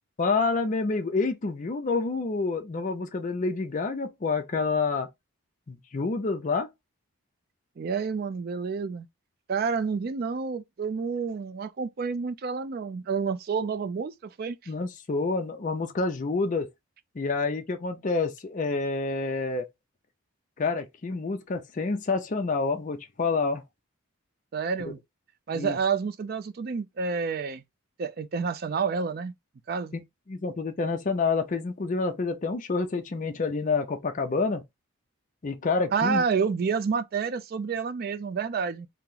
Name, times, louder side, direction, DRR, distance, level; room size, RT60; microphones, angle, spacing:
voice 1, 0.2-5.1 5.7-6.7 14.7-16.7 17.2-19.7 20.6-23.6 24.8-24.9 25.5-25.8 29.9-30.0 30.3-34.6 35.4-36.2, left 4 dB, 35° left, 0.4 m, -28 dB
voice 2, 7.8-9.1 9.5-14.7 24.5-25.0 25.5-27.6 28.0-29.3 29.7-29.9 35.9-38.9, right 5 dB, 45° right, 0.3 m, -29 dB
2.9 x 2.0 x 3.6 m
head